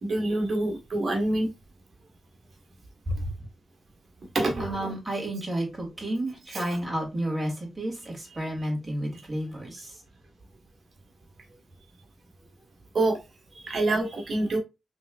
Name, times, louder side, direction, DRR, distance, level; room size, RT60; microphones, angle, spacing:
voice 1, 0.0-1.5 4.3-4.9 12.9-13.2 13.6-14.6, right 2 dB, 55° right, 1.6 m, -26 dB
voice 2, 4.6-10.0, right 1 dB, 30° right, 3.1 m, -31 dB
5.2 x 3.5 x 2.6 m
supercardioid pair, 40°, 0 cm